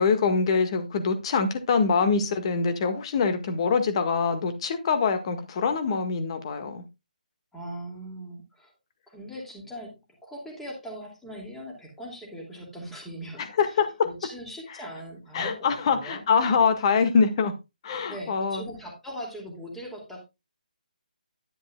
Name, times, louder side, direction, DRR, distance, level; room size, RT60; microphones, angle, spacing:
voice 1, 0.0-6.8 13.6-13.9 15.3-17.5 17.8-18.6, left 5 dB, 40° left, 8 dB, 1.7 m, -24 dB
voice 2, 7.5-8.7 9.1-13.8 14.0-16.2 18.1-20.2, equal, 5° left, -2 dB, 2.6 m, -40 dB
11.0 x 9.3 x 2.3 m, 0.24 s
figure-of-eight pair, 155°, 5 cm